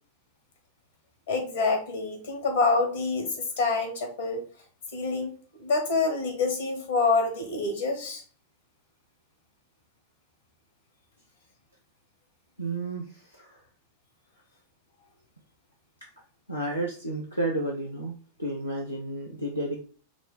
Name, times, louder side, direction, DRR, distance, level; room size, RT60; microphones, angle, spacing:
voice 1, 1.3-4.4 4.9-8.2, left 3 dB, 60° left, 4 dB, 1.5 m, -27 dB
voice 2, 12.6-13.6 16.5-18.1 18.4-19.8, right 1 dB, 85° left, -1 dB, 0.7 m, -31 dB
5.1 x 2.2 x 4.8 m, 0.43 s
figure-of-eight pair, 90°, 0 cm